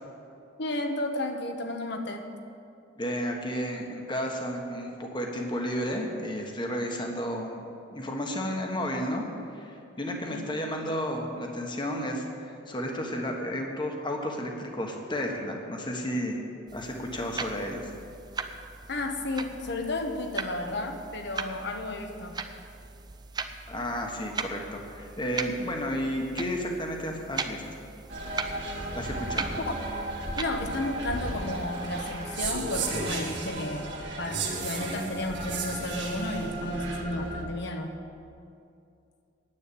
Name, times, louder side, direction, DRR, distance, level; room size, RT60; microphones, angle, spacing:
voice 1, 0.6-2.2 10.3-10.5 18.9-22.4 29.7-29.8 30.4-37.9, left 2 dB, 60° left, 5 dB, 1.2 m, -33 dB
voice 2, 3.0-7.6 7.9-16.4 16.7-17.9 23.7-27.8 28.9-29.5, equal, 25° left, 1 dB, 1.4 m, -32 dB
sound 1, 16.7-32.6, right 4 dB, 20° right, 0.5 m, -40 dB
sound 2, 28.1-37.4, right 2 dB, 65° right, 2.1 m, -34 dB
9.8 x 8.5 x 8.5 m, 2.5 s
head